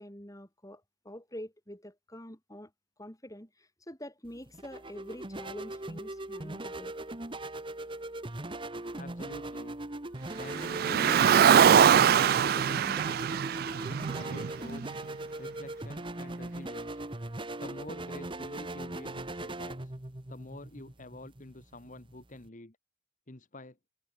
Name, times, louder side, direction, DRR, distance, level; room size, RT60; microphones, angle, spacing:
voice 1, 0.0-2.7 3.0-6.9, equal, 15° left, 6.4 m, -46 dB
sound 1, 4.2-22.5, right 1 dB, 25° right, 1.5 m, -40 dB
voice 2, 8.9-9.8 10.3-13.4 13.9-14.8 15.4-17.0 17.6-19.9 20.3-22.8 23.3-23.8, left 1 dB, 40° left, 1.6 m, -47 dB
Car, 10.5-14.9, right 8 dB, 45° right, 0.3 m, -23 dB
head